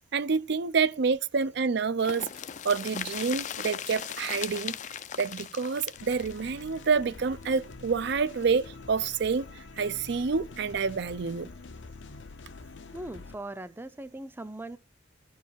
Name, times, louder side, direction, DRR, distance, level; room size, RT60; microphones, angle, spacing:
voice 1, 0.1-2.3 2.6-4.8 5.2-9.5 9.8-11.5, right 5 dB, 60° right, 0.5 m, -28 dB
sound 1, 2.0-7.7 8.0-8.1 8.4-8.5, left 9 dB, 40° left, 0.4 m, -38 dB
sound 2, 6.0-13.4, left 3 dB, 70° left, 0.7 m, -46 dB
voice 2, 12.9-14.8, right 1 dB, 10° right, 0.5 m, -40 dB
12.5 x 4.8 x 7.4 m
head